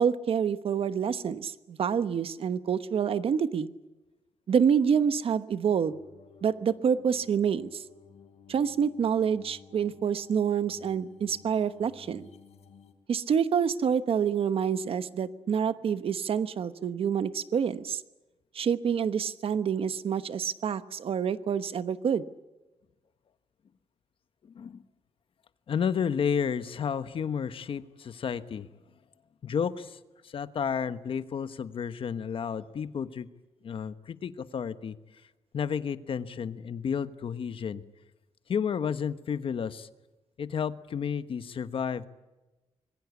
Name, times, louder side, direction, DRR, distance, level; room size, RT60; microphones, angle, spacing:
voice 1, 0.0-3.7 4.5-6.0 6.4-7.8 8.5-12.3 13.1-18.0 18.5-22.2, right 7 dB, 60° right, 13 dB, 1.1 m, -27 dB
sound 1, 5.8-12.9, left 7 dB, 80° left, 3.9 m, -55 dB
voice 2, 24.4-24.8 25.7-28.7 29.4-33.3 33.6-35.0 35.5-37.8 38.5-39.9 40.4-42.1, left 7 dB, 55° left, 12 dB, 1.2 m, -31 dB
25.5 x 21.5 x 8.3 m, 1.1 s
wide cardioid pair, 150°, 11 cm